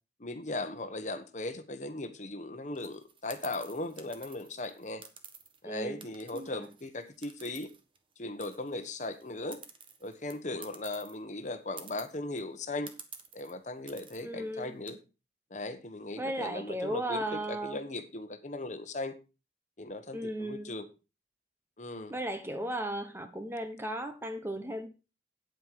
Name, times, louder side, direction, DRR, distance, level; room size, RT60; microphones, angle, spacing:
voice 1, 0.2-5.0 5.6-7.7 8.2-9.6 10.0-12.9 13.3-15.0 15.5-19.2 19.8-20.9 21.8-22.1, left 2 dB, 40° left, 1.2 m, -38 dB
sound 1, 2.7-5.6 6.0-8.1 8.4-11.1 11.5-11.6 11.8-12.4 12.9-13.5 13.9-14.2 14.6-14.9, right 6 dB, 30° right, 1.3 m, -50 dB
voice 2, 5.6-6.0 6.3-6.7 14.2-14.7 16.2-17.8 20.1-20.8 22.1-24.9, right 1 dB, 15° right, 1.0 m, -35 dB
9.3 x 8.9 x 4.7 m
head